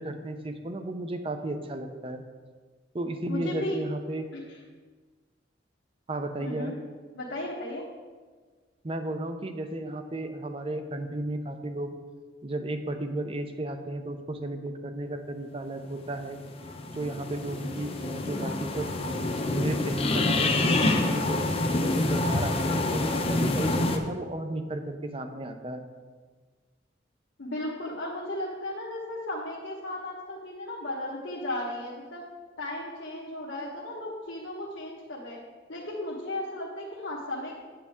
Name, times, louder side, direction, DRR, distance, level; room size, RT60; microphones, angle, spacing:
voice 1, 0.0-2.2 2.9-4.3 6.1-6.7 8.8-11.9 12.4-16.4 16.9-18.9 19.5-25.8, right 1 dB, 30° right, 7 dB, 0.6 m, -34 dB
voice 2, 3.3-3.8 4.3-4.6 6.4-6.8 7.1-7.8 27.4-32.2 32.6-35.4 35.7-37.6, left 1 dB, 85° left, -5 dB, 1.3 m, -35 dB
sound 1, 16.1-24.0, left 2 dB, 35° left, 0.7 m, -27 dB
8.7 x 8.1 x 3.6 m, 1.5 s
head